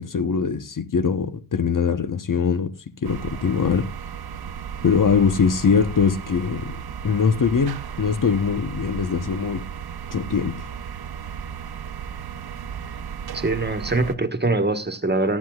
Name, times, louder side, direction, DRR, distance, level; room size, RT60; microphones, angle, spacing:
voice 1, 0.0-2.7 3.0-3.9 4.8-6.8 7.0-9.7 10.1-10.7, left 6 dB, 50° left, 1.1 m, -22 dB
sound 1, 3.0-14.2, right 7 dB, 65° right, 0.9 m, -35 dB
voice 2, 13.3-15.4, right 2 dB, 25° right, 1.4 m, -23 dB
17.5 x 12.5 x 2.4 m
wide cardioid pair, 105°, 40 cm